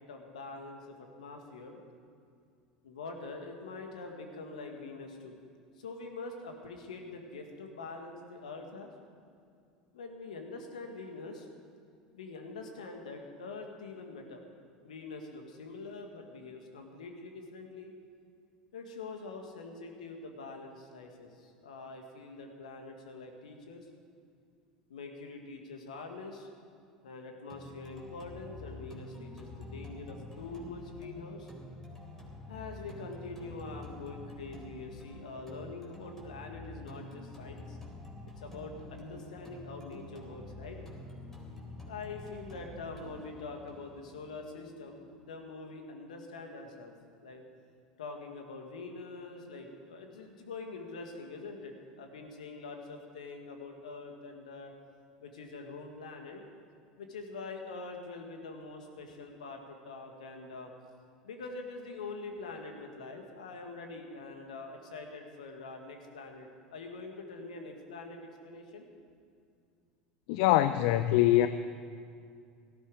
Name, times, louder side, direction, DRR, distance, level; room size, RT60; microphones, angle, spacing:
voice 1, 0.1-1.8 2.8-5.4 5.8-8.9 9.9-11.5 12.1-14.4 14.8-17.9 18.7-23.9 24.9-26.5 27.0-31.5 32.5-37.8 38.4-40.8 41.9-46.9 47.2-47.4 48.0-54.7 55.2-56.4 57.0-60.7 61.2-68.9, left 3 dB, 75° left, 3 dB, 2.0 m, -44 dB
sound 1, 27.5-45.5, left 2 dB, 10° left, 3.8 m, -47 dB
voice 2, 70.3-71.5, left 14 dB, 60° left, 11 dB, 0.5 m, -23 dB
17.5 x 14.0 x 4.9 m, 2.3 s
hypercardioid pair, 75°, 4 cm